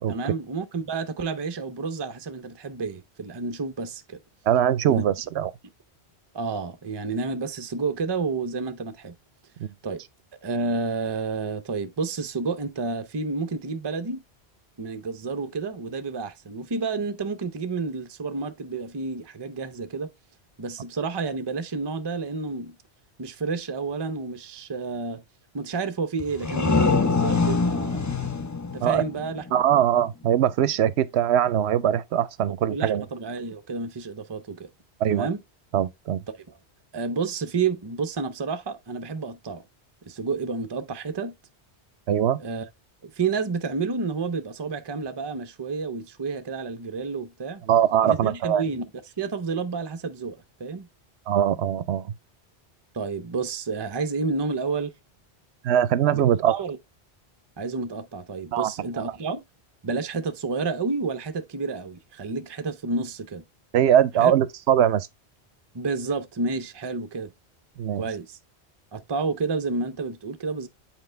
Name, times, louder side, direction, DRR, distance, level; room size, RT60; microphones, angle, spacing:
voice 1, 0.1-4.2 4.9-5.0 6.3-9.1 9.8-10.0 10.4-14.2 14.8-20.1 20.6-22.8 23.2-25.2 25.5-28.0 28.7-29.4 32.6-34.7 35.1-35.4 36.5-36.6 36.9-39.6 40.0-41.3 42.4-42.6 43.0-47.6 48.0-48.9 49.2-50.9 52.9-54.9 56.1-56.2 56.5-56.8 57.6-59.4 59.8-63.4 64.2-64.3 65.7-67.3 68.0-68.4 68.9-70.7, right 4 dB, 30° right, 0.5 m, -30 dB
voice 2, 4.5-5.5 9.6-9.7 28.8-29.0 29.5-33.0 35.0-35.3 35.7-36.2 42.1-42.4 47.7-48.6 51.3-52.1 55.6-56.5 58.5-58.7 63.7-65.1 67.8-68.0, right 10 dB, 75° right, 0.8 m, -21 dB
sound 1, 26.2-29.8, left 4 dB, 25° left, 0.4 m, -24 dB
7.9 x 4.4 x 3.2 m
omnidirectional pair, 1.1 m